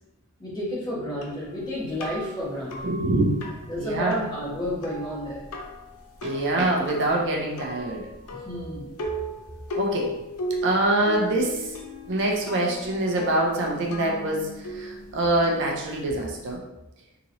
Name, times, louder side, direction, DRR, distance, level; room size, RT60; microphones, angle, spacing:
voice 1, 0.4-2.9 3.7-5.4 8.4-8.9, equal, 20° left, -8 dB, 1.2 m, -31 dB
sound 1, 1.2-16.6, left 1 dB, 80° left, 0.5 m, -37 dB
voice 2, 2.8-3.5 3.8-4.2 6.2-8.1 9.8-10.2 10.6-11.8 12.1-16.6, right 2 dB, 55° right, 0 dB, 0.5 m, -25 dB
2.9 x 2.9 x 2.6 m, 0.96 s
head